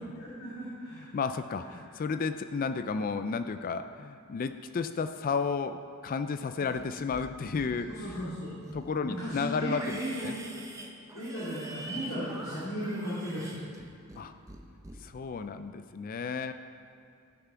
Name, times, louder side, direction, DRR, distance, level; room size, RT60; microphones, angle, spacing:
voice 1, 0.0-1.1 1.6-1.7 7.8-8.6 9.0-10.4 11.1-13.6, equal, 70° left, -10 dB, 2.8 m, -36 dB
voice 2, 0.9-8.3 8.7-10.3 14.2-14.3 15.0-16.5, left 5 dB, 40° left, 10 dB, 0.3 m, -33 dB
Livestock farm animals working animals, 6.6-7.3 7.5-8.3 8.6-14.2 14.5-15.0, right 2 dB, 15° right, 0.7 m, -45 dB
14.5 x 5.9 x 5.7 m, 2.5 s
head